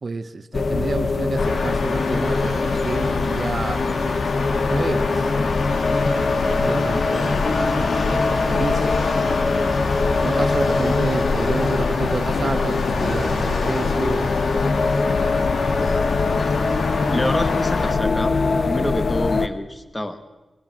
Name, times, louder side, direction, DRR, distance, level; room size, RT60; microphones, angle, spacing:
voice 1, 0.0-4.2 4.7-5.3 5.9-9.0 10.1-14.3, right 4 dB, 45° right, 11 dB, 1.0 m, -30 dB
sound 1, 0.5-19.5, left 4 dB, 55° left, 1.0 m, -22 dB
sound 2, 1.4-17.9, left 3 dB, 85° left, 2.1 m, -27 dB
voice 2, 17.1-18.3 18.6-20.2, left 1 dB, 15° left, 8 dB, 1.6 m, -27 dB
24.0 x 21.5 x 6.0 m, 1.1 s
wide cardioid pair, 130°, 0 cm